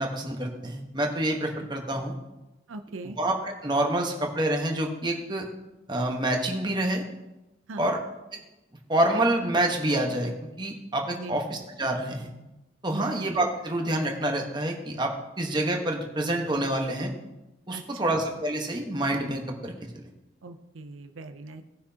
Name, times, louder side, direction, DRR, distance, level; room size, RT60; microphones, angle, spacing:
voice 1, 0.0-2.1 3.2-5.5 5.9-7.0 7.8-8.0 8.3-8.4 8.9-10.3 10.6-12.3 12.8-15.1 15.4-17.1 17.7-19.7, right 1 dB, 25° right, 2 dB, 1.2 m, -27 dB
voice 2, 2.7-3.2 7.7-7.9 11.2-11.4 12.9-13.3 17.7-18.2 20.4-21.6, right 3 dB, 85° right, 8 dB, 0.6 m, -40 dB
18.0 x 6.1 x 2.9 m, 1.0 s
head